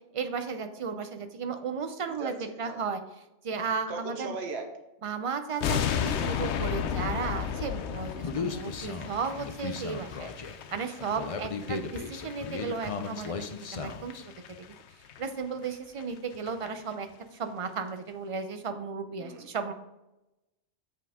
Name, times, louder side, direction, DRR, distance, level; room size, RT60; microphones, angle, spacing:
voice 1, 0.1-3.0 3.4-4.4 5.0-14.3 15.2-19.7, right 5 dB, 35° right, 8 dB, 0.6 m, -35 dB
voice 2, 2.2-2.8 3.9-4.7 11.3-11.7 19.2-19.5, right 3 dB, 65° right, 3 dB, 1.3 m, -38 dB
sound 1, 5.6-14.8 15.0-15.2 15.6-15.7 16.0-16.1 16.3-16.7 16.9-17.0, left 8 dB, 80° left, 0.9 m, -34 dB
Human voice, 8.2-14.2, left 4 dB, 45° left, 0.5 m, -36 dB
7.4 x 5.7 x 3.6 m, 0.95 s
omnidirectional pair, 1.2 m